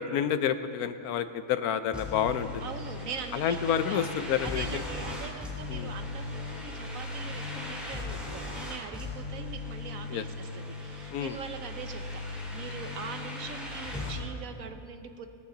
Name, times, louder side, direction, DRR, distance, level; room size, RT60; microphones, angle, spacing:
voice 1, 0.0-2.7 3.3-4.8 5.7-5.9 10.1-10.2 11.1-11.4, left 8 dB, 80° left, 12 dB, 1.1 m, -29 dB
sound 1, 1.9-14.2, left 2 dB, ahead, 3.0 m, -38 dB
voice 2, 2.6-3.6 3.9-4.1 4.4-15.3, right 6 dB, 65° right, 7 dB, 1.3 m, -42 dB
19.0 x 14.0 x 3.9 m, 2.4 s
omnidirectional pair, 1.6 m